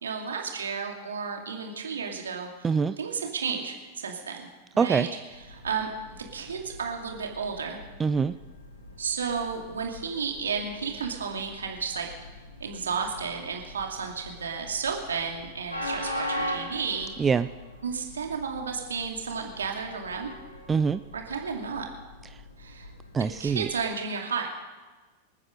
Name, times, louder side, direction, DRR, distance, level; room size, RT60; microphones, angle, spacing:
voice 1, 0.0-2.7 3.0-4.5 4.7-7.8 9.0-12.1 12.6-17.1 17.8-20.3 21.1-21.9 22.6-22.9 23.2-24.5, right 5 dB, 70° right, 2 dB, 2.5 m, -32 dB
voice 2, 2.6-2.9 4.8-5.1 8.0-8.3 17.2-17.5 20.7-21.0 23.1-23.7, right 5 dB, 15° right, 13 dB, 0.4 m, -24 dB
Train, 5.3-23.9, left 1 dB, 80° left, 2.6 m, -41 dB
27.0 x 9.7 x 5.2 m, 1.3 s
figure-of-eight pair, 90°, 0 cm